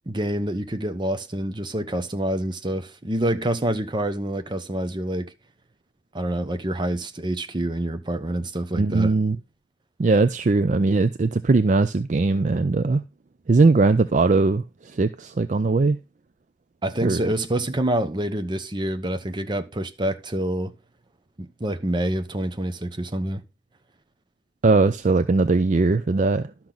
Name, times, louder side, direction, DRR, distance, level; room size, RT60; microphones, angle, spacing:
voice 1, 0.1-5.3 6.1-9.1 16.8-20.7 21.4-23.4, right 1 dB, 25° right, 0.8 m, -27 dB
voice 2, 8.7-9.4 10.0-13.0 13.5-14.6 14.9-16.0 17.0-17.2 24.6-26.4, right 3 dB, 45° right, 0.4 m, -20 dB
12.0 x 6.0 x 3.9 m
head